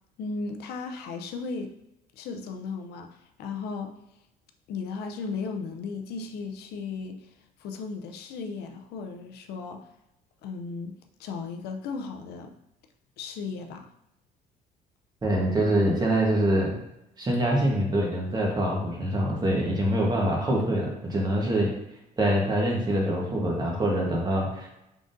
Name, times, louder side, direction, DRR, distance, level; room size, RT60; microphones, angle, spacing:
voice 1, 0.2-1.7 2.2-4.0 4.7-7.3 7.6-9.8 10.4-10.9 11.2-12.5 13.2-13.9, left 4 dB, 75° left, 5 dB, 0.5 m, -35 dB
voice 2, 15.2-16.7 17.2-21.7 22.2-24.7, right 1 dB, 25° right, -2 dB, 1.1 m, -25 dB
3.8 x 3.6 x 2.5 m, 0.87 s
cardioid pair, 110°, 17 cm